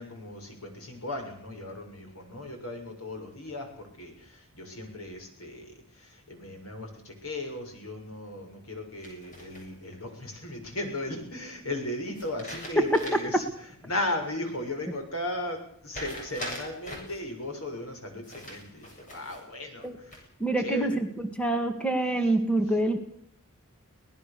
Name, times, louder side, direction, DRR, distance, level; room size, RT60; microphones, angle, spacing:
voice 1, 0.0-20.2 20.6-21.0, left 1 dB, 80° left, 4 dB, 6.9 m, -36 dB
sound 1, 9.0-10.0 12.2-13.4 13.8-13.9 15.9-17.2 18.2-19.4 19.9-20.5, equal, 35° left, 7.9 m, -41 dB
voice 2, 20.4-21.1 21.4-23.0, right 2 dB, 5° left, 6 dB, 2.0 m, -26 dB
24.0 x 19.0 x 6.9 m, 0.65 s
head